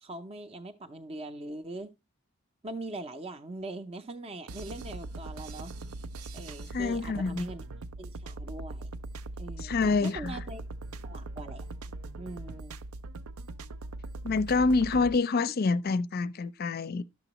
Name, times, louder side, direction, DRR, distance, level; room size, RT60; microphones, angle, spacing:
voice 1, 0.0-1.9 2.6-5.7 6.3-7.6 8.0-8.9 9.4-10.6 11.0-11.7 12.2-12.8, right 2 dB, 30° right, 0.5 m, -41 dB
sound 1, 4.5-15.2, right 2 dB, 90° right, 0.5 m, -41 dB
voice 2, 6.7-7.5 9.6-10.4 14.2-17.0, left 4 dB, 45° left, 0.5 m, -27 dB
11.5 x 6.9 x 2.9 m
head